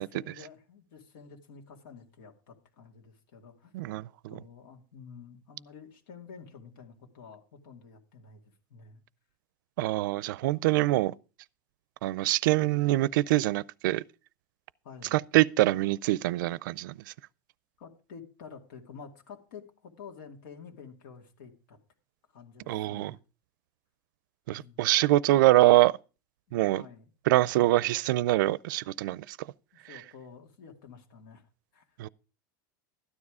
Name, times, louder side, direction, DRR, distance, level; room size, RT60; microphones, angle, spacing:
voice 1, 0.0-3.7 4.3-9.0 14.8-15.2 17.8-21.8 22.3-23.2 24.5-24.8 26.5-27.1 29.7-32.0, left 6 dB, 80° left, 2.4 m, -50 dB
voice 2, 3.7-4.4 9.8-11.1 12.0-14.0 15.1-17.1 22.7-23.2 24.5-26.0 26.5-26.8 27.3-29.5 29.9-30.0 32.0-32.1, right 17 dB, 75° right, 0.5 m, -25 dB
13.0 x 9.8 x 4.9 m
supercardioid pair, 145°, 11 cm